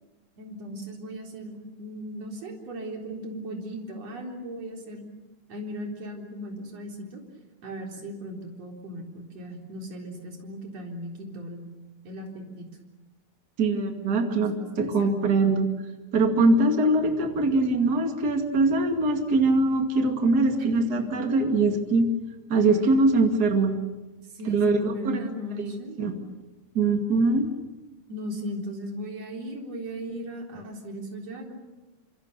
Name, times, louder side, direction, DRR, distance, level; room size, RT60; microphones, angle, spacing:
voice 1, 0.4-5.1 5.5-7.2 7.6-11.7 12.0-12.7 14.1-15.3 20.6-21.1 24.3-26.1 28.1-31.5, equal, 55° right, 1 dB, 4.9 m, -37 dB
voice 2, 13.6-15.7 16.1-22.1 22.5-23.8 24.4-25.2 25.6-25.7 26.0-26.1 26.7-27.5, right 2 dB, 30° right, 4 dB, 2.5 m, -22 dB
27.5 x 26.0 x 6.8 m, 1.1 s
omnidirectional pair, 3.6 m